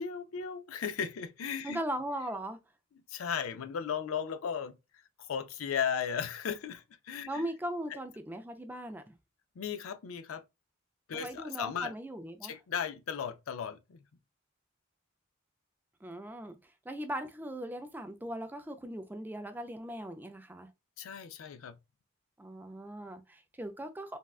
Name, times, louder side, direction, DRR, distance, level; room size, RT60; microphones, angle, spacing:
voice 1, 0.0-1.8 3.1-4.8 5.2-7.4 9.6-10.4 11.1-11.9 12.4-14.0 21.0-21.7, left 7 dB, 85° left, 0.4 m, -36 dB
voice 2, 1.6-2.6 7.3-9.1 11.1-12.6 16.0-20.7 22.4-24.2, right 1 dB, 10° right, 0.3 m, -39 dB
3.6 x 2.2 x 2.3 m
head